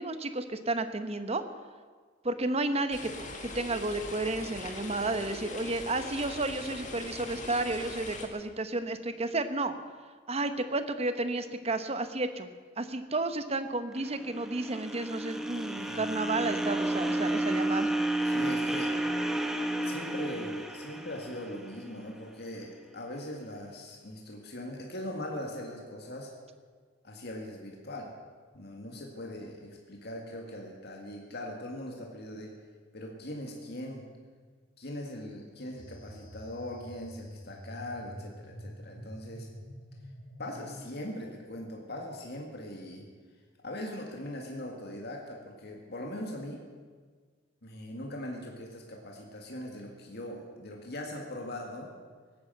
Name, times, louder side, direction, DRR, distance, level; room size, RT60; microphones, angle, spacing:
voice 1, 0.0-1.4 2.2-3.1 3.4-9.7 10.3-12.5 12.8-17.9, right 2 dB, 30° right, 10 dB, 1.0 m, -32 dB
sound 1, 2.9-8.3, left 2 dB, 40° left, 1.9 m, -41 dB
sound 2, 14.0-22.2, right 1 dB, ahead, 1.0 m, -31 dB
voice 2, 18.2-18.9 19.8-26.3 27.0-28.1 28.5-32.6 32.9-34.1 34.8-39.5 40.4-43.1 43.6-46.6 47.6-51.9, left 1 dB, 55° left, 0 dB, 2.1 m, -40 dB
sound 3, 35.8-40.9, equal, 75° left, 4.7 m, -47 dB
17.5 x 10.0 x 7.9 m, 1.5 s
head